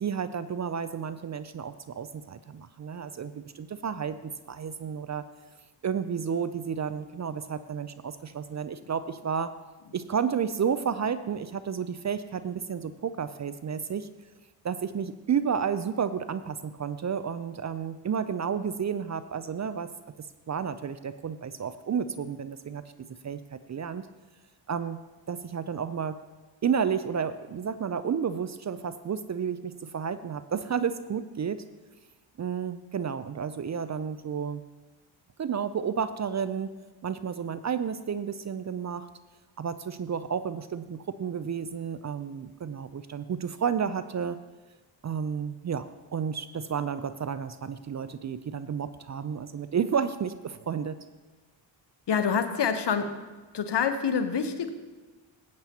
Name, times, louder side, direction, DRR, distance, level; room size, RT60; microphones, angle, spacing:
voice 1, 0.0-5.2 5.8-9.5 9.9-14.1 14.6-19.9 20.2-24.1 24.7-25.0 25.3-26.2 26.6-31.6 32.4-34.6 35.4-36.7 37.0-39.1 39.6-44.4 45.0-45.9 46.1-51.0, right 7 dB, 40° right, 13 dB, 0.5 m, -31 dB
voice 2, 52.1-53.2 53.5-54.7, left 6 dB, 60° left, 8 dB, 1.0 m, -26 dB
14.0 x 8.4 x 2.9 m, 1.2 s
cardioid pair, 50°, 47 cm